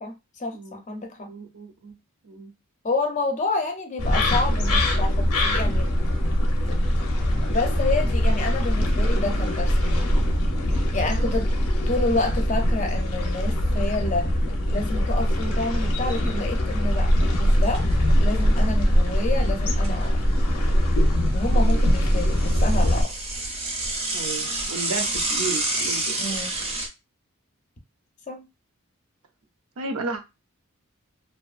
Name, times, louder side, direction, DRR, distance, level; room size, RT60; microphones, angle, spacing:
voice 1, 0.0-1.3 2.8-5.9 6.7-6.8 7.5-10.0 10.7-11.5 11.9-14.3 14.7-17.9 18.2-20.2 21.3-23.2 26.2-26.6 28.3-28.4, left 2 dB, 35° left, 0.5 m, -29 dB
voice 2, 1.3-1.9 2.2-2.5 11.0-11.3 21.5-21.9 24.1-26.2 29.8-30.2, right 3 dB, 80° right, 0.5 m, -34 dB
sound 1, 4.0-23.0, equal, 85° left, 0.7 m, -22 dB
Bicycle / Mechanisms, 17.3-18.0 18.3-18.4 18.6-18.7 19.4-20.6 20.9-26.9, right 2 dB, 30° right, 0.5 m, -29 dB
2.6 x 2.3 x 2.4 m
head